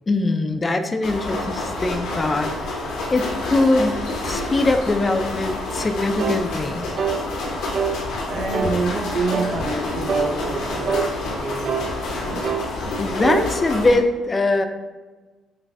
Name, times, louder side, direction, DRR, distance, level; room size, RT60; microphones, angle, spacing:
voice 1, 0.1-6.9 13.0-14.6, left 2 dB, 25° left, 7 dB, 0.4 m, -22 dB
sound 1, 1.0-14.0, left 2 dB, 90° left, 0.9 m, -28 dB
sound 2, 6.2-6.4 7.0-7.2 7.7-8.0 8.5-8.8 9.3-9.5 10.1-10.3 10.9-11.1 11.6-11.9 12.4-12.7 13.2-13.5 14.0-14.1, right 6 dB, 65° right, 0.4 m, -24 dB
voice 2, 8.2-12.5, right 3 dB, 85° right, -2 dB, 0.9 m, -28 dB
5.3 x 2.5 x 2.5 m, 1.3 s
cardioid pair, 90°, 0 cm